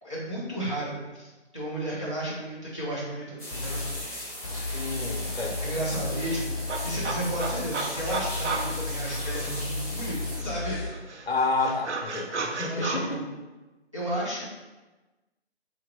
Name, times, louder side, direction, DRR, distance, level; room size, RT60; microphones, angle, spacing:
voice 1, 0.0-3.8 4.1-4.3 5.6-10.8 12.7-13.3 13.9-14.5, right 1 dB, 25° right, -9 dB, 0.7 m, -33 dB
sound 1, 3.4-10.4, left 1 dB, 10° left, 1.1 m, -38 dB
sound 2, 3.5-4.0 4.4-7.7 8.0-10.9, left 3 dB, 30° left, 0.9 m, -34 dB
voice 2, 4.7-5.7 11.3-13.2, left 3 dB, 60° left, 2 dB, 0.7 m, -30 dB
sound 3, 4.8-4.9 5.2-9.8 10.1-13.0, right 4 dB, 80° right, 0.7 m, -35 dB
3.5 x 2.8 x 3.8 m, 1.1 s
figure-of-eight pair, 175°, 34 cm